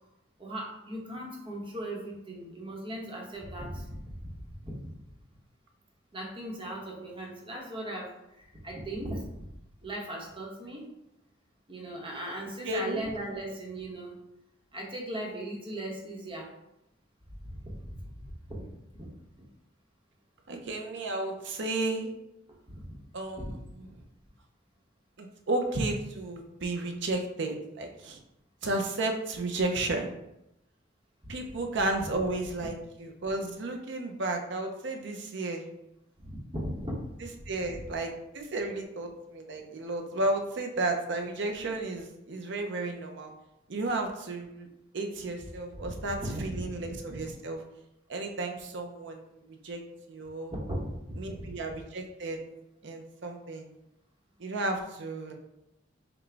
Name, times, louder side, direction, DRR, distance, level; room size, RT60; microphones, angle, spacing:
voice 1, 0.4-4.9 6.1-9.3 9.8-10.9 11.7-14.2 14.7-16.5 17.4-18.7 18.9-19.1 22.7-22.9 23.4-23.5 31.2-31.3 32.6-32.7 36.2-37.8 45.8-46.7 50.5-51.5, right 1 dB, 30° right, -2 dB, 1.1 m, -38 dB
voice 2, 12.6-13.0 20.5-22.1 23.1-23.9 25.2-28.2 28.6-30.1 31.3-35.7 37.5-43.3 43.7-44.7 44.9-47.6 48.1-49.8 50.1-50.5 51.2-52.4 52.8-53.7 54.4-55.3, right 2 dB, 65° right, 3 dB, 0.7 m, -33 dB
5.9 x 2.3 x 3.4 m, 0.87 s
head